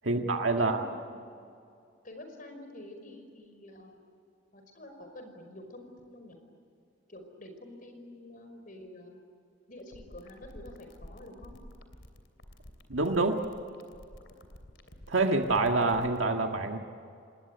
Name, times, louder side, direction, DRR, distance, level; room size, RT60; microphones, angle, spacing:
voice 1, 0.0-0.9 12.9-13.4 15.1-16.8, right 3 dB, 90° right, 3 dB, 1.8 m, -26 dB
voice 2, 0.6-1.4 2.0-4.0 4.5-6.4 7.1-9.2 9.7-11.6, left 1 dB, 45° left, 5 dB, 5.2 m, -48 dB
sound 1, 9.8-16.2, left 1 dB, 65° left, 3.0 m, -50 dB
27.0 x 20.5 x 9.4 m, 2.4 s
head